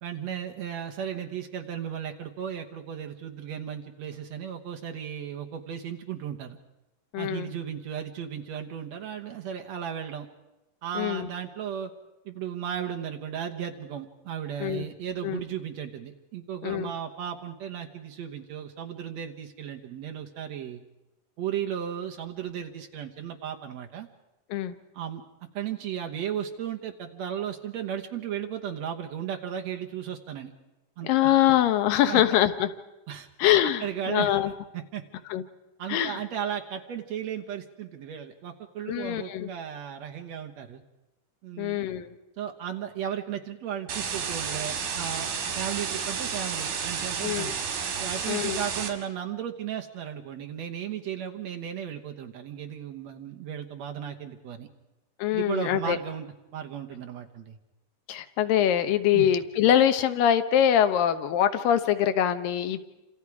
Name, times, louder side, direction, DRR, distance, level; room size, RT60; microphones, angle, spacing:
voice 1, 0.0-6.6 7.2-10.3 10.8-11.9 12.3-20.8 21.4-24.1 24.9-25.2 25.5-30.5 31.0-31.5 32.1-32.2 33.1-33.3 33.6-34.4 34.7-35.0 35.8-40.8 41.4-41.9 42.4-47.6 48.0-54.7 55.3-56.3 56.5-57.6 59.1-59.3, right 9 dB, 60° right, 4 dB, 2.1 m, -35 dB
voice 2, 7.1-7.5 11.0-11.3 14.6-14.8 15.2-15.4 16.6-16.9 24.5-24.8 31.0-32.7 33.4-34.5 35.3-35.4 35.9-36.2 38.9-39.5 41.6-42.1 47.2-47.5 48.3-48.6 55.2-56.0 58.1-62.8, left 11 dB, 90° left, 10 dB, 2.7 m, -23 dB
sound 1, 43.9-48.9, right 6 dB, 90° right, 4.1 m, -31 dB
28.5 x 26.5 x 4.8 m, 0.99 s
omnidirectional pair, 3.9 m